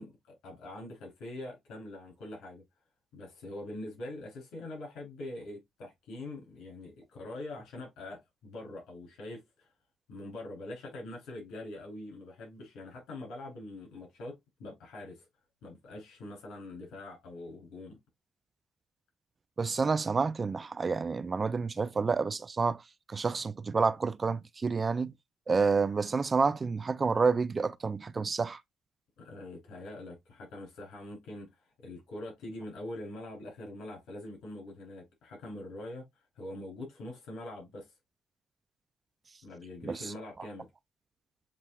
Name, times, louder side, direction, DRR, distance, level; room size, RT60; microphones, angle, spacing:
voice 1, 0.0-2.6 3.1-9.7 10.1-15.3 15.6-18.0 29.2-31.5 31.8-36.0 36.3-37.9 39.4-40.7, left 1 dB, 85° left, 3.3 m, -43 dB
voice 2, 19.6-22.8 23.1-25.1 25.5-28.6 39.9-40.0, right 4 dB, 35° right, 0.4 m, -29 dB
7.3 x 3.1 x 2.3 m
cardioid pair, 90°, 0 cm